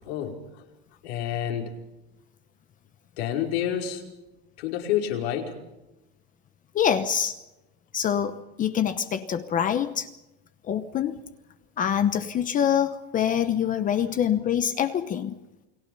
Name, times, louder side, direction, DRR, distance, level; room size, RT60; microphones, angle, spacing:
voice 1, 0.1-0.6 1.0-1.8 3.2-4.1 4.6-5.6, left 10 dB, 80° left, 5.3 m, -29 dB
voice 2, 6.7-7.4 7.9-10.1 10.6-11.2 11.8-15.3, left 9 dB, 25° left, 0.9 m, -25 dB
29.5 x 20.5 x 5.5 m
supercardioid pair, 155°, 31 cm